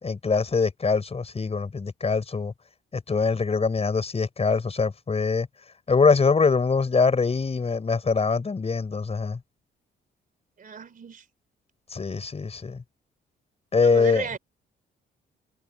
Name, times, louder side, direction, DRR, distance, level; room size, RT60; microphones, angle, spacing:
voice 1, 0.0-2.5 2.9-5.5 5.9-9.4 11.9-12.8 13.7-14.2, left 4 dB, 30° left, 5.1 m, -23 dB
voice 2, 10.6-11.3 13.8-14.4, right 6 dB, 45° right, 3.3 m, -35 dB
cardioid pair, 90°, 20 cm